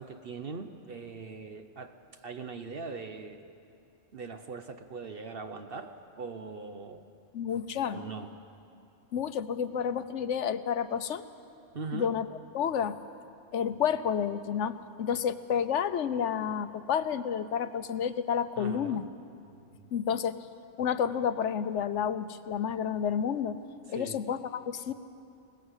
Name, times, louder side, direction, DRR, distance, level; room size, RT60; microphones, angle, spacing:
voice 1, 0.0-1.9 2.2-3.4 4.1-7.1 7.8-8.3 11.7-12.1 18.6-19.0 19.4-19.7 23.9-24.2, right 4 dB, 55° right, 7 dB, 1.0 m, -41 dB
voice 2, 7.3-8.0 9.1-11.2 11.9-12.3 12.5-13.0 13.5-19.1 19.9-20.5 20.8-24.9, left 8 dB, 80° left, 12 dB, 1.1 m, -30 dB
20.5 x 18.5 x 8.1 m, 2.6 s
omnidirectional pair, 1.2 m